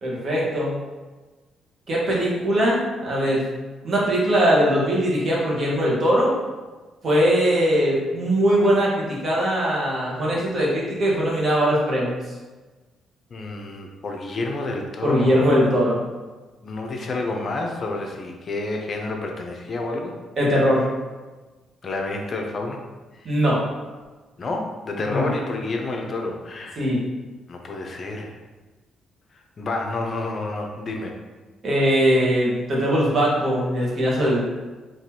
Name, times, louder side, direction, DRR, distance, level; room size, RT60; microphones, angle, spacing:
voice 1, 0.0-0.8 1.9-3.4 3.8-6.3 7.0-12.2 15.0-16.0 20.4-20.9 23.2-23.6 25.1-25.3 26.8-27.0 31.6-34.4, equal, 50° right, -5 dB, 1.3 m, -20 dB
voice 2, 13.3-15.5 16.6-20.2 21.8-22.8 23.2-23.4 24.4-26.9 27.5-28.3 29.6-31.1, left 2 dB, 45° left, 2 dB, 0.5 m, -29 dB
3.8 x 2.9 x 2.9 m, 1.3 s
cardioid pair, 90°, 0 cm